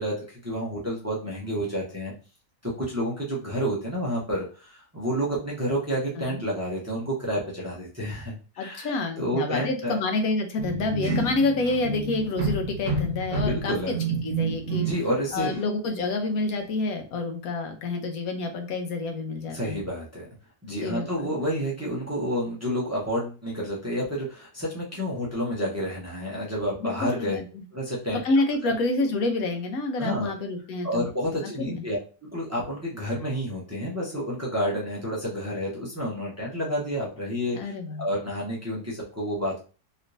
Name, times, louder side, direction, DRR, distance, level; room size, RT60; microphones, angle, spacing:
voice 1, 0.0-2.1 2.6-8.9 9.2-10.0 13.3-13.9 14.7-15.5 19.5-20.3 20.6-27.4 27.7-28.2 30.0-30.3 30.8-37.7 38.0-39.6, equal, 15° right, -4 dB, 0.6 m, -29 dB
voice 2, 8.6-14.0 14.2-14.9 15.3-19.8 20.7-21.3 26.8-27.6 28.1-31.1 31.4-31.8 37.5-38.1, left 3 dB, 65° left, 5 dB, 1.1 m, -28 dB
sound 1, 10.6-15.1 15.4-15.7, right 3 dB, 35° right, 0.9 m, -29 dB
3.2 x 3.0 x 2.6 m, 0.35 s
omnidirectional pair, 1.8 m